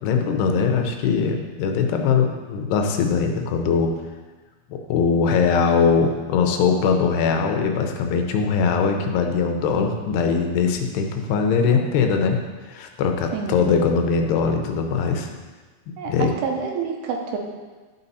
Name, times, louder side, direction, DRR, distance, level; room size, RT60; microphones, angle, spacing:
voice 1, 0.0-3.9 4.7-12.4 12.7-15.3 16.1-16.3, left 5 dB, 80° left, 4 dB, 2.9 m, -21 dB
voice 2, 13.3-13.7 16.0-17.4, right 6 dB, 80° right, 2 dB, 2.9 m, -28 dB
12.0 x 5.5 x 4.1 m, 1.3 s
omnidirectional pair, 4.7 m